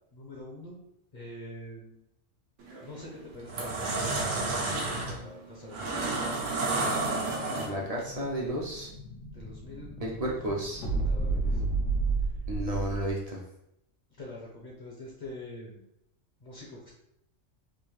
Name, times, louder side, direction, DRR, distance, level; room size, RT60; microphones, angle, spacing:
voice 1, 0.1-0.8 1.1-2.0 2.8-6.5 9.3-10.1 11.0-11.6 12.2-12.4 14.2-15.8 16.4-16.9, left 1 dB, 40° left, -3 dB, 0.7 m, -45 dB
sound 1, 2.6-2.8 3.3-8.0, right 3 dB, 75° right, 1.2 m, -30 dB
voice 2, 7.5-8.9 10.0-10.8 12.5-13.4, right 1 dB, 45° right, -2 dB, 0.5 m, -32 dB
Explosion, 7.6-13.2, right 3 dB, 85° left, 1.4 m, -32 dB
3.7 x 2.6 x 3.1 m, 0.80 s
omnidirectional pair, 1.3 m